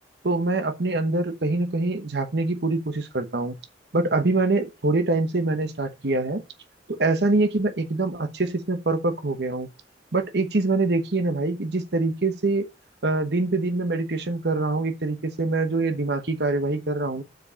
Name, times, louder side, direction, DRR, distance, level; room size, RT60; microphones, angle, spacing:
voice 1, 0.2-3.5 3.9-6.4 6.9-9.7 10.1-12.7 13.0-17.2, right 2 dB, 65° right, 1.1 m, -24 dB
6.2 x 5.0 x 6.8 m
head